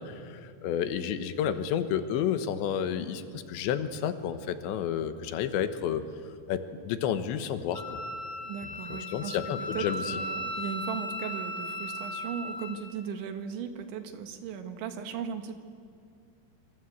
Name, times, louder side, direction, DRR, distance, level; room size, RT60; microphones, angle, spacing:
voice 1, 0.0-6.0 6.5-8.0 8.9-10.2, left 9 dB, 80° left, 10 dB, 3.4 m, -31 dB
Wind instrument woodwind instrument, 7.7-12.9, left 1 dB, 10° right, 2.8 m, -37 dB
voice 2, 8.4-15.6, right 7 dB, 85° right, 7 dB, 4.1 m, -37 dB
27.0 x 25.0 x 8.1 m, 2.3 s
omnidirectional pair, 5.2 m